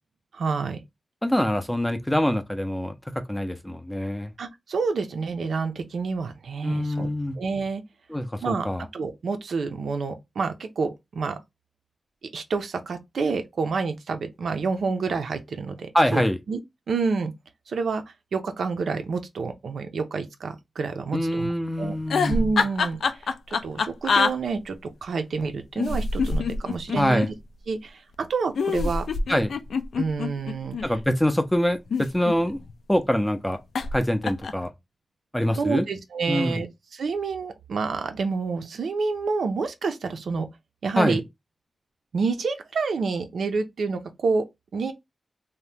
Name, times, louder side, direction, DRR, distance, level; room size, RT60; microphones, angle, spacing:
voice 1, 0.3-0.8 4.4-7.1 7.4-7.8 8.4-8.7 8.9-11.4 12.3-16.2 16.5-16.6 16.9-17.3 17.7-18.0 18.3-21.5 21.8-22.0 22.3-24.8 25.0-27.3 27.7-29.1 30.0-30.8 35.6-36.7 36.9-40.5 40.8-41.2 42.1-44.5 44.7-44.9, right 4 dB, 75° right, 0.5 m, -28 dB
voice 2, 1.2-4.3 6.6-7.4 8.1-8.9 15.9-16.4 21.1-22.4 27.0-27.3 29.3-29.5 30.8-32.6 32.9-33.6 33.9-34.7 35.3-35.9 36.3-36.6 41.0-41.2, equal, 5° left, 0.4 m, -24 dB
sound 1, 22.0-24.3 25.8-27.3 28.6-30.9 31.7-32.7 33.8-34.0 34.2-34.7, left 4 dB, 85° left, 0.3 m, -25 dB
2.8 x 2.1 x 3.2 m
wide cardioid pair, 165°, 0 cm